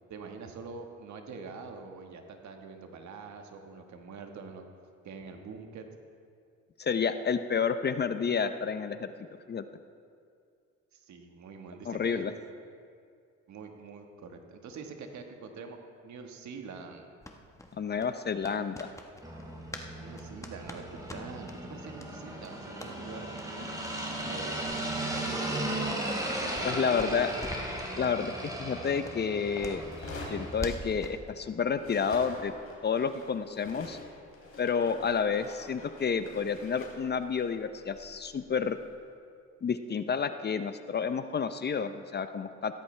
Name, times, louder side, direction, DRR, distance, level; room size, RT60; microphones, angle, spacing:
voice 1, 0.1-4.7 5.0-5.8 10.9-12.2 13.5-17.2 20.0-20.9 21.1-23.7 24.3-25.9 26.4-27.4, right 4 dB, 70° right, 4 dB, 1.5 m, -45 dB
voice 2, 6.8-9.1 9.5-9.6 11.9-12.3 17.8-18.9 26.6-27.3 28.0-29.8 30.3-32.5 32.8-34.0 34.6-38.8 39.6-42.8, left 6 dB, 35° left, 10 dB, 0.6 m, -30 dB
sound 1, 17.2-19.9 20.2-21.6 22.0-22.1 22.4-22.9 23.3-23.5 23.8-23.9 24.2-24.4 24.7-26.7 27.0-27.7 28.0-28.2 28.5-28.6 29.0-31.2, left 1 dB, 10° left, 1.1 m, -44 dB
sound 2, 19.2-30.8, right 1 dB, 10° right, 2.5 m, -36 dB
sound 3, 29.8-31.4 31.7-38.9, left 2 dB, 50° left, 3.4 m, -47 dB
16.0 x 13.0 x 3.3 m, 2.3 s
cardioid pair, 90°, 30 cm